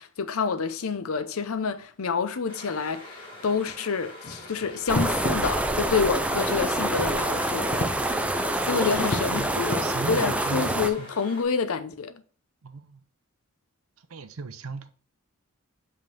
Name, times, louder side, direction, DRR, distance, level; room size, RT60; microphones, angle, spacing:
voice 1, 0.0-7.7 8.6-12.2, left 5 dB, 90° left, 0.6 m, -28 dB
sound 1, 2.5-11.4, left 1 dB, 25° left, 2.0 m, -44 dB
sound 2, 4.2-9.9, left 1 dB, 50° left, 0.7 m, -35 dB
sound 3, 4.9-10.9, right 1 dB, 5° right, 0.4 m, -26 dB
voice 2, 9.3-11.1 12.6-13.0 14.1-14.9, right 4 dB, 80° right, 0.6 m, -37 dB
5.5 x 3.7 x 5.2 m
head